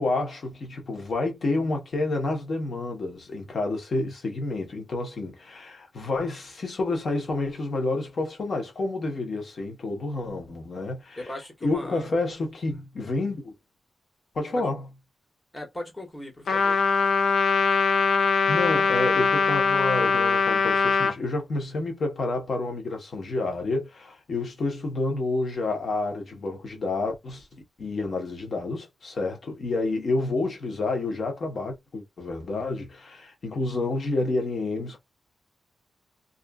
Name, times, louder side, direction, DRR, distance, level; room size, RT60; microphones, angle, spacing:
voice 1, 0.0-11.2 11.6-13.5 14.3-14.8 18.5-27.5 27.8-35.0, left 2 dB, 50° left, 0.9 m, -29 dB
voice 2, 11.2-12.1 12.7-12.8 14.5-14.6 15.5-16.8, left 1 dB, 15° left, 0.9 m, -38 dB
Trumpet, 16.5-21.1, left 5 dB, 75° left, 0.4 m, -22 dB
2.5 x 2.4 x 2.2 m
wide cardioid pair, 170°, 0 cm